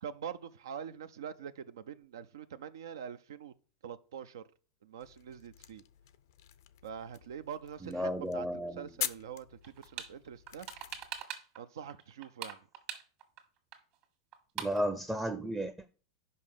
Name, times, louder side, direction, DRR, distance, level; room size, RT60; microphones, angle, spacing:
voice 1, 0.0-3.5 3.8-4.4 4.8-5.8 6.8-10.7 11.6-12.6, right 8 dB, 80° right, 0.4 m, -44 dB
sound 1, 5.0-11.2, left 12 dB, 70° left, 0.5 m, -45 dB
voice 2, 7.8-8.9 14.6-15.9, equal, 5° right, 0.5 m, -34 dB
sound 2, 9.6-10.1 10.5-11.6 11.9-13.4 13.7-13.8 14.0-14.1 14.3-14.8, right 9 dB, 50° right, 1.6 m, -42 dB
5.4 x 5.3 x 6.6 m
hypercardioid pair, 105°, 2 cm